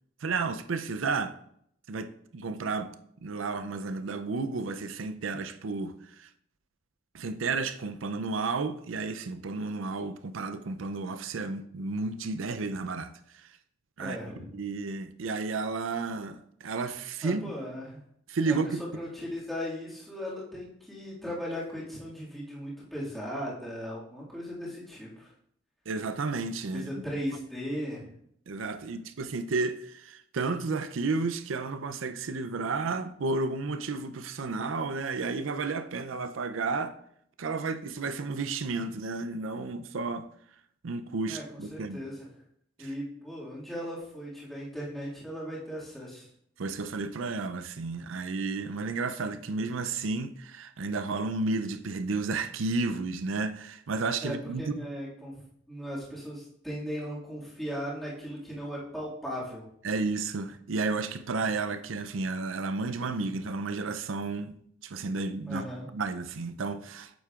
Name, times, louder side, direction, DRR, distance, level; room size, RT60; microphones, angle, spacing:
voice 1, 0.2-1.4 1.9-2.9 3.2-6.3 7.1-13.1 14.0-17.5 18.3-18.8 25.9-27.0 28.5-36.9 37.4-40.3 40.8-42.0 42.8-42.9 46.6-54.7 59.8-65.7 65.9-67.1, right 3 dB, 80° right, 0.5 m, -32 dB
voice 2, 14.0-14.5 17.2-18.0 18.5-25.3 26.7-28.1 41.3-42.4 42.8-46.3 54.2-55.3 55.7-59.7 65.5-65.9, equal, ahead, 2.0 m, -37 dB
8.5 x 7.4 x 2.4 m
head